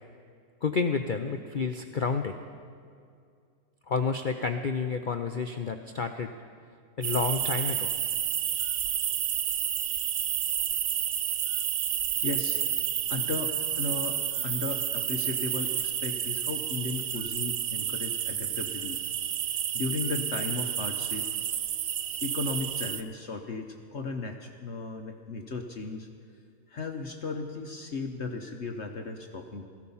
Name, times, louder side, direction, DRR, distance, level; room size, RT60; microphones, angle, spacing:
voice 1, 0.6-2.3 3.9-6.3 7.0-7.9, left 5 dB, 80° left, 6 dB, 0.4 m, -29 dB
sound 1, 7.0-23.0, right 10 dB, 75° right, 0.6 m, -30 dB
voice 2, 12.2-12.6 13.1-19.0 19.7-21.3 22.2-26.1 26.7-29.6, left 3 dB, 50° left, 4 dB, 1.0 m, -35 dB
17.0 x 15.0 x 5.5 m, 2.3 s
omnidirectional pair, 1.8 m